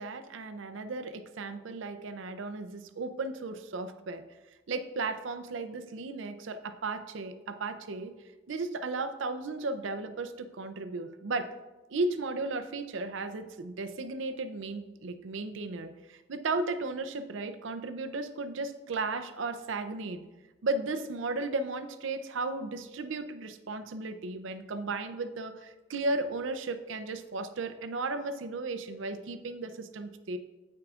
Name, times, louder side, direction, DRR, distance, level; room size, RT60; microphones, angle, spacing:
voice 1, 0.0-4.2 4.7-8.1 8.5-11.5 11.9-20.2 20.6-30.4, right 3 dB, 70° right, 9 dB, 0.5 m, -35 dB
13.5 x 4.7 x 2.4 m, 1.2 s
head